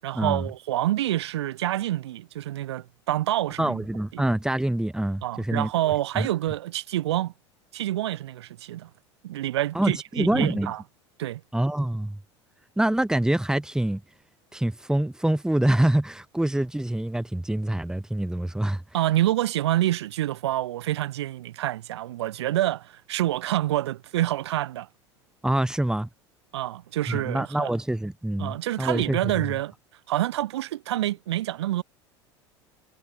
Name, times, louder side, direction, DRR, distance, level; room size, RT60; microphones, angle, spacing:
voice 1, 0.0-3.8 4.1-4.2 5.2-7.3 7.7-8.9 9.2-10.8 11.2-11.4 18.9-24.9 26.5-27.7 28.4-29.7 30.1-31.8, right 14 dB, 65° right, 7.4 m, -27 dB
voice 2, 3.6-5.7 6.1-6.3 9.7-10.7 11.5-12.2 12.8-14.0 14.5-18.8 25.4-26.1 27.1-29.3, right 1 dB, 5° right, 5.2 m, -25 dB
figure-of-eight pair, 75°, 15 cm